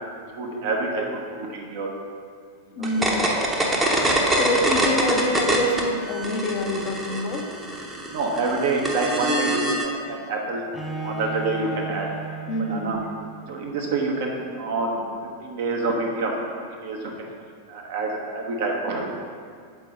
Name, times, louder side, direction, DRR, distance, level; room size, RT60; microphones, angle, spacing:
voice 1, 0.1-1.9 2.7-3.2 8.1-10.6 11.0-12.1 12.6-13.0 13.5-17.3 17.7-19.1, right 3 dB, 50° right, 0 dB, 1.0 m, -27 dB
voice 2, 2.7-3.1 4.4-7.6 12.5-13.0, left 1 dB, 40° left, 2 dB, 0.7 m, -26 dB
sound 1, 2.8-5.8 6.1-9.9, right 1 dB, 10° right, 0.9 m, -24 dB
Bowed string instrument, 10.7-13.7, right 3 dB, 5° left, 0.6 m, -35 dB
7.0 x 4.6 x 3.8 m, 2.1 s
figure-of-eight pair, 90°, 0 cm